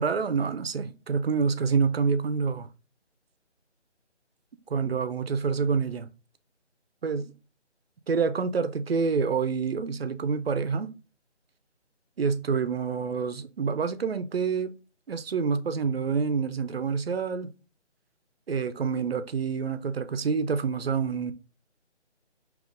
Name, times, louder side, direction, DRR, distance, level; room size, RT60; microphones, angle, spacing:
voice 1, 0.0-2.7 4.7-6.1 7.0-7.3 8.1-10.9 12.2-14.7 15.1-17.5 18.5-21.3, right 5 dB, 55° right, 0.5 m, -27 dB
5.3 x 3.0 x 2.4 m
figure-of-eight pair, 165°, 35 cm